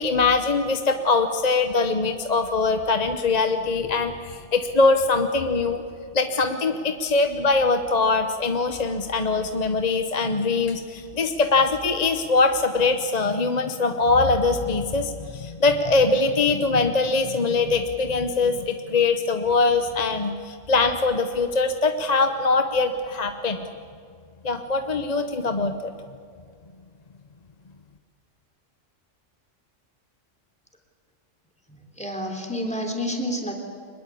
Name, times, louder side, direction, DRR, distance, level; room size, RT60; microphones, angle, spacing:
voice 1, 0.0-5.8 6.1-23.7 24.4-25.9, left 3 dB, 35° left, 7 dB, 1.0 m, -22 dB
voice 2, 31.7-33.6, equal, 5° left, 2 dB, 3.4 m, -29 dB
24.5 x 21.0 x 8.5 m, 2.3 s
omnidirectional pair, 1.3 m